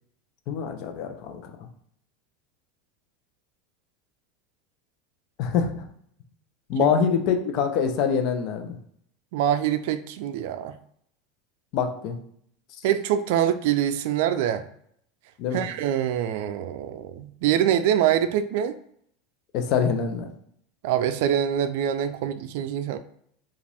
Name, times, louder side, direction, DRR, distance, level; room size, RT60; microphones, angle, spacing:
voice 1, 0.5-1.7 5.4-5.8 6.7-8.8 11.7-12.2 15.4-15.6 19.5-20.3, left 6 dB, 50° left, 5 dB, 0.7 m, -25 dB
voice 2, 9.3-10.8 12.8-14.6 15.5-18.8 20.8-23.0, right 10 dB, 70° right, 11 dB, 0.4 m, -24 dB
5.0 x 2.5 x 3.4 m, 0.67 s
supercardioid pair, 135°, 0 cm